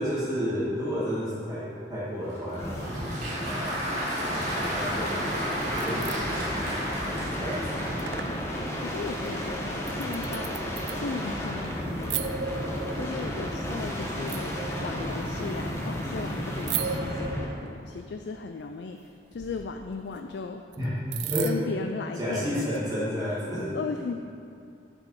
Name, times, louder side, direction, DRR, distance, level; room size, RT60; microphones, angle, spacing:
voice 1, 0.0-3.7 4.5-5.2 5.8-6.7 7.4-7.9 20.8-20.9 21.2-21.5 22.2-23.7, equal, 20° right, -10 dB, 2.0 m, -31 dB
Applause, 2.3-8.5, equal, 45° right, 1.9 m, -33 dB
sound 1, 2.5-17.6 19.3-19.8, equal, 15° left, 1.0 m, -33 dB
sound 2, 5.8-6.2 7.0-7.4 7.6-7.7 8.0-8.4 9.3-9.4 9.9-11.3 12.0-13.6 14.3-15.3 16.6-18.1 19.9-20.0 20.7-20.8 21.1-21.8 22.5-22.8, right 7 dB, 80° right, 0.4 m, -36 dB
voice 2, 8.8-12.7 12.9-14.5 14.8-20.6 21.4-22.7 23.3-23.4 23.7-24.3, left 4 dB, 75° left, 6 dB, 0.4 m, -36 dB
11.5 x 5.2 x 4.8 m, 2.5 s
head